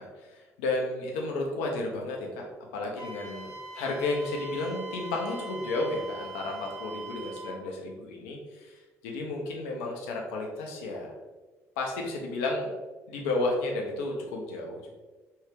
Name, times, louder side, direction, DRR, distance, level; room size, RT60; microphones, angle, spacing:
voice 1, 0.0-2.5 2.7-11.1 11.8-12.7 13.1-14.9, left 2 dB, 75° left, 0 dB, 0.6 m, -32 dB
Wind instrument woodwind instrument, 2.9-7.6, right 2 dB, 75° right, 1.5 m, -42 dB
3.3 x 2.7 x 3.2 m, 1.2 s
hypercardioid pair, 50°, 8 cm